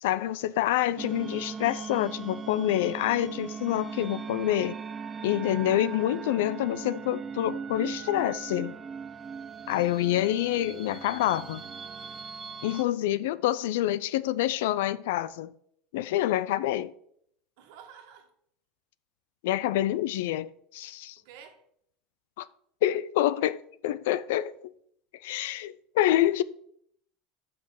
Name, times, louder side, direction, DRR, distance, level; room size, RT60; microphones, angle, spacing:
voice 1, 0.0-4.8 5.2-8.8 9.7-11.6 12.6-15.5 15.9-16.9 19.4-21.2 22.4-22.5 22.8-24.7 25.2-26.4, left 13 dB, 90° left, 0.4 m, -27 dB
sound 1, 1.0-12.8, right 5 dB, 20° right, 0.4 m, -39 dB
voice 2, 17.6-18.3 21.2-21.6, right 8 dB, 75° right, 1.6 m, -50 dB
5.7 x 5.2 x 6.4 m
supercardioid pair, 145°, 0 cm